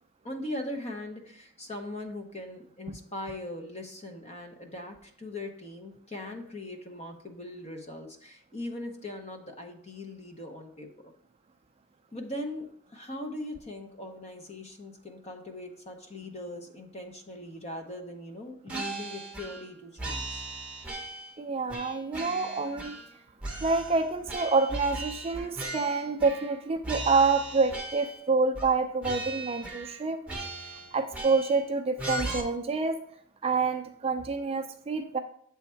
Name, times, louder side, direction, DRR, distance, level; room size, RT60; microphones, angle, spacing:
voice 1, 0.2-11.1 12.1-20.5, left 1 dB, 30° left, 4 dB, 0.8 m, -40 dB
sound 1, 18.7-19.7 20.0-21.4 21.7-23.1 23.4-26.6 26.8-28.2 28.6-28.8 29.0-30.0 30.3-31.6 32.0-32.4, right 2 dB, 5° right, 0.9 m, -38 dB
voice 2, 21.4-23.0 23.6-30.2 30.9-33.0 33.4-35.2, right 4 dB, 25° right, 5 dB, 0.4 m, -27 dB
7.2 x 3.5 x 4.3 m, 0.63 s
head